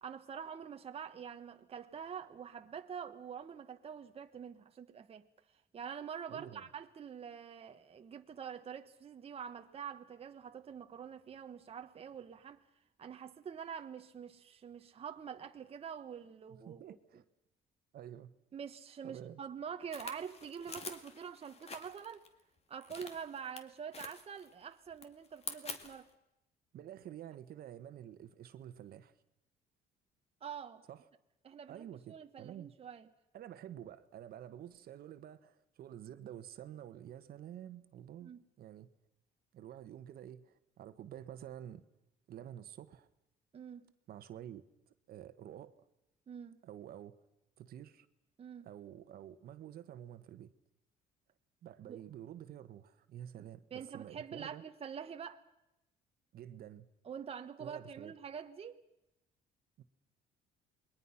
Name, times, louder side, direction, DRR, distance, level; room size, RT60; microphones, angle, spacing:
voice 1, 0.0-5.3 5.7-12.6 13.0-17.2 18.5-22.2 22.7-26.1 30.4-30.8 31.4-33.1 38.2-38.4 43.5-43.8 46.3-46.6 48.4-48.7 51.9-52.0 53.7-55.4 57.0-58.8, right 7 dB, 35° right, 1.3 m, -46 dB
voice 2, 6.3-6.6 16.5-17.2 17.9-18.3 19.0-19.4 26.7-29.2 30.9-31.0 31.7-32.7 33.3-38.3 38.6-38.9 39.5-41.8 42.3-43.1 44.1-44.6 45.1-45.7 46.6-47.1 47.6-48.1 48.6-50.5 51.6-54.6 56.3-56.9 57.6-58.1 59.8-59.9, right 11 dB, 65° right, 1.5 m, -49 dB
sound 1, 19.9-22.3 22.8-23.6 23.9-24.6 24.9-26.1, left 4 dB, 40° left, 2.3 m, -47 dB
28.0 x 21.5 x 5.9 m
cardioid pair, 110°, 17 cm